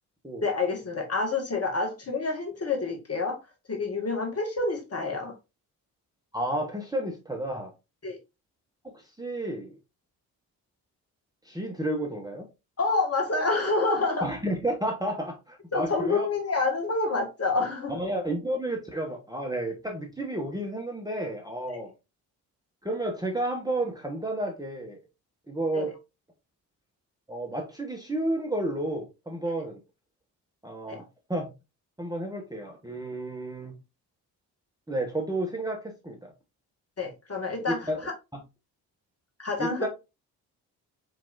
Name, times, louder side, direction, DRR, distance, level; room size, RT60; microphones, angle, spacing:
voice 1, 0.4-3.4 3.7-5.3 8.0-8.2 12.8-14.3 15.7-17.9 25.7-25.9 30.9-31.0 37.0-38.1 39.4-39.9, left 3 dB, 30° left, 1.8 m, -28 dB
voice 2, 6.3-7.7 8.8-9.8 11.4-12.5 14.2-16.3 17.9-21.9 22.8-25.0 25.5-25.9 27.3-29.8 30.6-31.5 32.0-33.8 34.9-36.3 37.9-38.0 38.3-38.4 39.6-39.9, right 1 dB, 10° right, 1.2 m, -31 dB
4.6 x 3.6 x 2.7 m
figure-of-eight pair, 40°, 48 cm